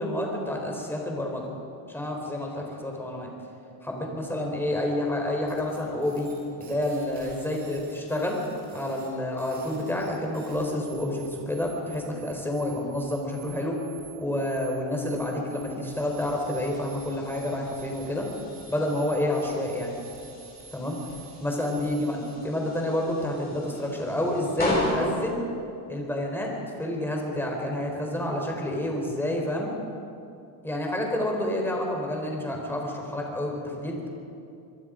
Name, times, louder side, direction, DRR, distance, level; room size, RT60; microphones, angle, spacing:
voice 1, 0.0-1.5 1.9-3.3 3.8-6.3 6.6-8.4 8.7-13.8 14.2-18.3 18.7-19.9 20.7-21.0 21.4-25.4 25.9-29.7 30.6-34.1, left 1 dB, 5° left, 0 dB, 4.4 m, -29 dB
sound 1, 5.5-22.3, right 7 dB, 40° right, 6.1 m, -51 dB
sound 2, 15.9-26.8, left 1 dB, 20° left, 6.5 m, -37 dB
26.0 x 22.5 x 5.3 m, 2.6 s
cardioid pair, 130°, 43 cm